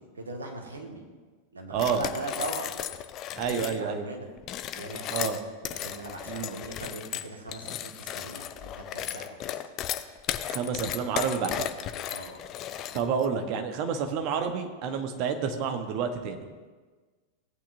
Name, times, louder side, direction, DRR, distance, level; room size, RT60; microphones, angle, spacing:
voice 1, 0.2-1.0 1.5-2.8 3.4-4.3 4.7-5.3 5.6-9.6 12.1-12.4, right 2 dB, 75° right, 1 dB, 1.7 m, -40 dB
sound 1, 1.7-3.8 4.4-13.3, left 11 dB, 35° left, 0.5 m, -35 dB
voice 2, 1.7-2.0 3.4-4.1 5.1-5.4 6.3-6.6 10.5-11.7 12.9-16.5, right 6 dB, 40° right, 6 dB, 1.1 m, -29 dB
16.5 x 8.7 x 2.7 m, 1.4 s
figure-of-eight pair, 90°, 0 cm